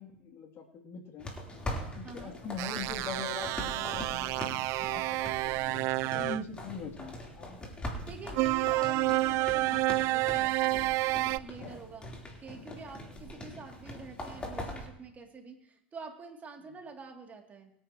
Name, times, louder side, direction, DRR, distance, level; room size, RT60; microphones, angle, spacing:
voice 1, 0.0-1.3 2.0-4.5 4.8-8.0 11.6-11.7, left 4 dB, 45° left, 2 dB, 2.8 m, -42 dB
sound 1, 1.2-14.9, left 1 dB, 15° left, 3.6 m, -42 dB
voice 2, 2.0-2.4 8.1-10.6 11.2-12.1 12.4-17.7, right 4 dB, 25° right, 1 dB, 2.8 m, -47 dB
sound 2, 2.6-6.4 8.3-11.4, right 19 dB, 55° right, 0.4 m, -29 dB
24.0 x 9.7 x 3.0 m, 0.73 s
hypercardioid pair, 95°, 6 cm